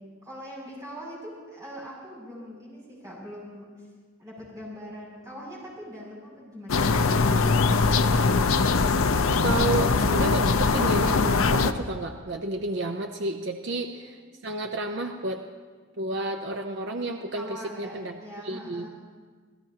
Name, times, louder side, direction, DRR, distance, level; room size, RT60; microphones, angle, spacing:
voice 1, 0.0-3.7 4.2-7.8 13.6-14.3 17.3-18.9, equal, 15° right, -6 dB, 6.8 m, -42 dB
sound 1, 6.7-11.7, left 4 dB, 85° left, 0.7 m, -22 dB
voice 2, 9.4-15.4 16.0-18.2 18.4-18.9, right 2 dB, 55° right, 3 dB, 0.7 m, -31 dB
29.0 x 17.0 x 2.9 m, 1.5 s
head